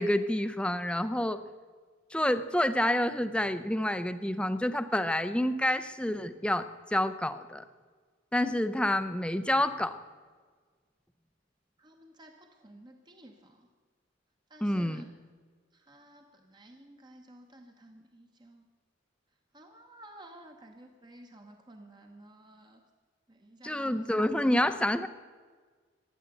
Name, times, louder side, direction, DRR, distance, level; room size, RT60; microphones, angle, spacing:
voice 1, 0.0-1.4 2.1-7.6 8.3-10.0 14.6-15.1 23.6-25.1, left 1 dB, 5° left, 12 dB, 0.6 m, -28 dB
voice 2, 11.8-13.7 14.5-15.1 15.7-18.6 19.5-22.8 23.3-24.2, right 1 dB, 20° right, 4 dB, 0.9 m, -53 dB
15.5 x 11.0 x 7.9 m, 1.5 s
head